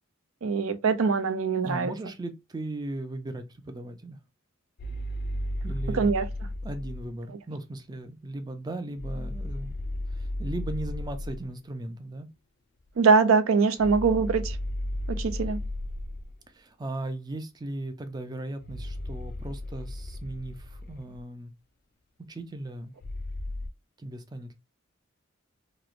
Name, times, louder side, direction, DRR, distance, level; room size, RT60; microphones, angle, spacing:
voice 1, 0.4-1.9 5.9-6.3 13.0-14.6 15.1-15.6, right 5 dB, 85° right, 0.5 m, -23 dB
voice 2, 1.6-4.2 5.6-6.1 6.6-9.7 10.1-12.3 16.5-21.5 22.3-22.9 24.0-24.5, right 2 dB, 20° right, 0.3 m, -37 dB
sound 1, 4.8-7.1 9.0-11.5 13.8-16.4 18.6-21.2 23.0-23.7, left 1 dB, 50° left, 0.4 m, -34 dB
3.0 x 2.0 x 2.4 m
head